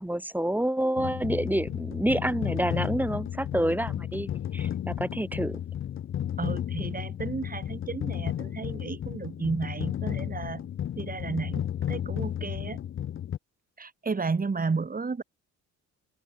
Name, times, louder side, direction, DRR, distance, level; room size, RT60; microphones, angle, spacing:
voice 1, 0.0-5.6, right 1 dB, 5° right, 3.8 m, -28 dB
sound 1, 1.0-13.4, left 10 dB, 45° left, 0.6 m, -33 dB
voice 2, 6.4-10.6 11.0-12.8 13.8-15.2, right 4 dB, 30° right, 4.3 m, -33 dB
cardioid pair, 90°, 30 cm